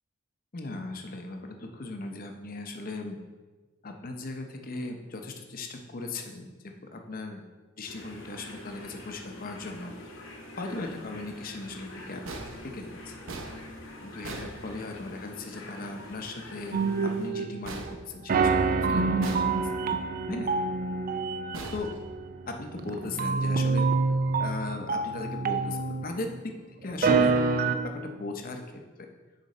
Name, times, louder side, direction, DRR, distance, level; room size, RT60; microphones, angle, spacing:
voice 1, 0.5-3.2 3.8-6.5 6.9-7.4 7.8-9.9 10.6-12.2 12.6-13.2 14.0-19.7 20.3-20.5 21.7-21.9 22.5-23.9 24.4-26.5 26.8-27.4 27.8-29.1, left 2 dB, 45° left, 4 dB, 0.6 m, -38 dB
sound 1, 7.9-17.3, left 1 dB, 70° left, 0.9 m, -45 dB
sound 2, 12.3-15.3 17.6-18.7 19.2-20.0 21.5-22.6, right 3 dB, 75° right, 0.7 m, -42 dB
sound 3, 16.7-17.9 18.3-26.4 26.9-27.8, right 4 dB, 45° right, 0.4 m, -27 dB
6.4 x 4.3 x 4.1 m, 1.3 s
head